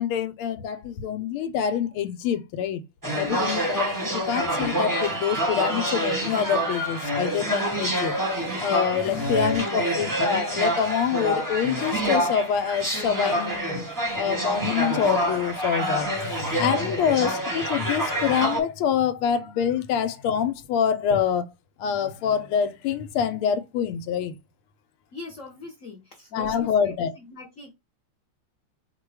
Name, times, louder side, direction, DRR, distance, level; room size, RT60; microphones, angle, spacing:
voice 1, 0.0-2.8 3.2-8.1 8.6-13.8 14.2-21.4 21.8-24.3 26.3-27.1, left 8 dB, 90° left, 1.5 m, -26 dB
sound 1, 3.0-18.6, right 1 dB, 15° right, 0.7 m, -27 dB
voice 2, 8.9-10.1 16.6-17.0 25.1-27.7, left 4 dB, 55° left, 0.9 m, -41 dB
4.7 x 2.2 x 4.6 m
omnidirectional pair, 2.3 m